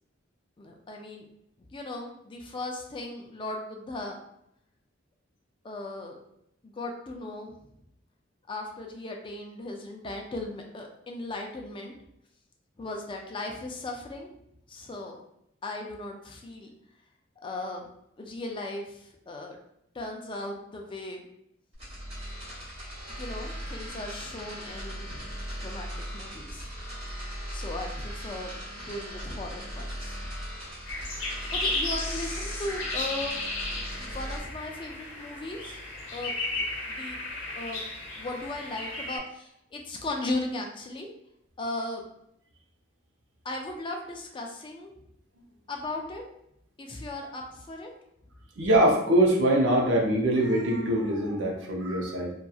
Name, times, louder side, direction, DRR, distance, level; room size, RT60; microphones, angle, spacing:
voice 1, 0.6-1.3 1.7-4.2 5.6-6.2 6.6-7.5 8.5-11.9 12.8-14.3 14.7-15.2 15.6-16.7 17.4-17.9 18.2-19.6 19.9-21.2 23.2-25.3 25.6-26.8 27.5-30.3 31.2-33.4 33.7-35.8 36.1-37.2 37.6-37.8 38.2-41.1 41.6-42.1 43.4-45.0 45.7-46.2 46.8-47.9, left 2 dB, 25° left, 2 dB, 0.4 m, -37 dB
sound 1, 21.7-34.4, equal, 30° right, 1.1 m, -38 dB
sound 2, 30.9-39.2, left 2 dB, 70° left, 0.7 m, -34 dB
voice 2, 48.6-52.3, right 1 dB, 65° right, -1 dB, 0.6 m, -23 dB
2.7 x 2.3 x 2.3 m, 0.75 s
head